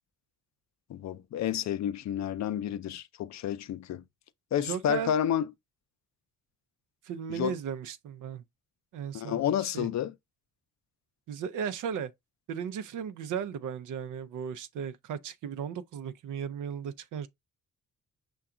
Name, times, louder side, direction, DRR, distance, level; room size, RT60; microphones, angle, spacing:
voice 1, 0.9-4.0 4.5-5.5 7.3-7.5 9.1-10.1, left 10 dB, 60° left, 0.5 m, -30 dB
voice 2, 4.6-5.1 7.0-8.4 8.9-9.9 11.3-12.1 12.5-17.3, right 7 dB, 75° right, 0.5 m, -36 dB
5.8 x 2.3 x 3.6 m
cardioid pair, 95°, 31 cm